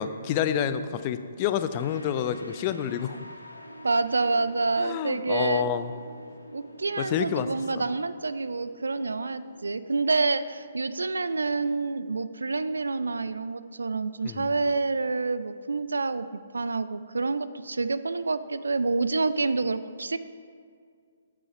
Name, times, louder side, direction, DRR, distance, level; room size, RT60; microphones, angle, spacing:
voice 1, 0.0-3.2 4.8-5.9 7.0-7.5 7.7-7.8 14.2-14.5, left 9 dB, 30° left, 11 dB, 0.5 m, -28 dB
sound 1, 1.7-12.6, equal, 80° left, 1.0 m, -48 dB
voice 2, 3.8-5.7 6.5-16.3 16.5-20.2, right 3 dB, 70° right, 13 dB, 0.4 m, -28 dB
8.4 x 7.5 x 5.5 m, 2.1 s
figure-of-eight pair, 130°, 0 cm